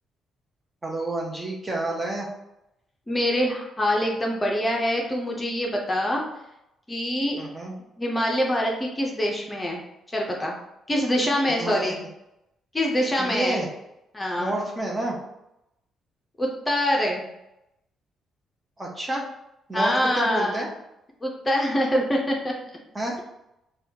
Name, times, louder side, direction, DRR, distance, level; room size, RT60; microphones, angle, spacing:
voice 1, 0.8-2.3 7.4-7.7 11.5-11.9 13.2-13.7 14.4-15.2 18.8-19.2 19.7-20.7 22.9-23.2, right 2 dB, 20° right, -1 dB, 0.8 m, -29 dB
voice 2, 3.1-6.2 6.9-7.4 8.0-9.8 10.1-10.5 10.9-12.0 12.7-13.6 14.1-14.6 16.4-17.3 19.7-20.7 21.2-22.5, equal, 15° left, -1 dB, 0.7 m, -24 dB
4.1 x 2.3 x 2.7 m, 0.86 s
cardioid pair, 90°, 0 cm